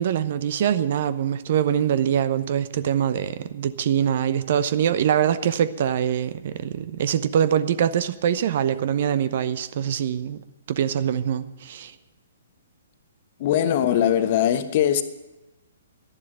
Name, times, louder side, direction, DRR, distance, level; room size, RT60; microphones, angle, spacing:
voice 1, 0.0-10.4 10.7-11.9, right 9 dB, 50° right, 0.9 m, -23 dB
voice 2, 13.4-15.0, left 10 dB, 40° left, 1.2 m, -21 dB
12.5 x 11.0 x 9.2 m
figure-of-eight pair, 120°, 0 cm